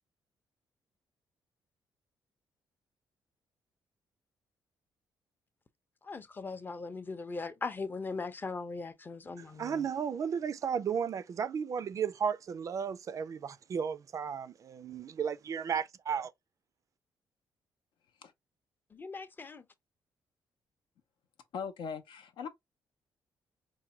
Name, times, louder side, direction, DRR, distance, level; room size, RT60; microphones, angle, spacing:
voice 1, 6.0-9.9 18.9-19.6, left 4 dB, 25° left, 0.6 m, -39 dB
voice 2, 9.4-16.3, right 7 dB, 45° right, 0.3 m, -34 dB
voice 3, 21.5-22.5, left 6 dB, 85° left, 0.7 m, -40 dB
4.6 x 2.2 x 2.8 m
cardioid pair, 105°, 8 cm